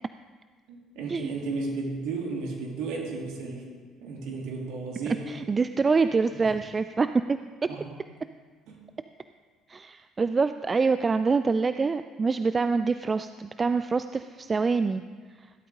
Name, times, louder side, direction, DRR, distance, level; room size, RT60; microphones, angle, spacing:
voice 1, 0.7-3.7 4.0-5.3 6.3-6.5 7.7-7.9 8.7-8.8, right 4 dB, 60° right, -1 dB, 3.1 m, -34 dB
voice 2, 5.3-7.4 9.7-15.0, right 4 dB, 30° right, 11 dB, 0.4 m, -25 dB
17.5 x 12.5 x 3.8 m, 1.5 s
figure-of-eight pair, 50°, 0 cm